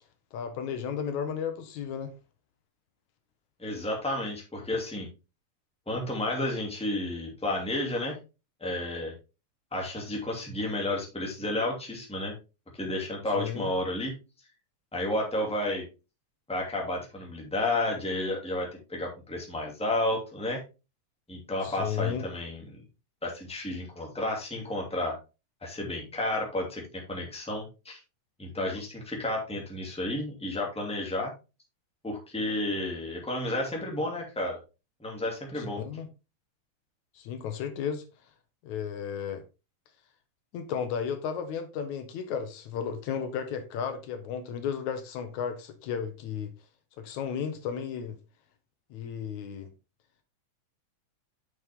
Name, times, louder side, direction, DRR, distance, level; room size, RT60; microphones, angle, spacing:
voice 1, 0.3-2.1 13.3-13.7 21.6-22.3 35.6-36.1 37.2-38.0 38.6-39.4 40.5-46.5 47.0-48.2 48.9-49.7, left 7 dB, 75° left, 2.3 m, -34 dB
voice 2, 3.6-5.1 5.9-8.2 8.6-9.1 9.7-12.4 12.7-14.1 14.9-15.8 16.5-20.6 21.3-22.8 23.2-25.2 25.6-28.0 28.4-31.3 32.0-34.6 35.0-35.8, left 1 dB, ahead, 2.1 m, -31 dB
7.7 x 6.3 x 3.6 m
omnidirectional pair, 3.4 m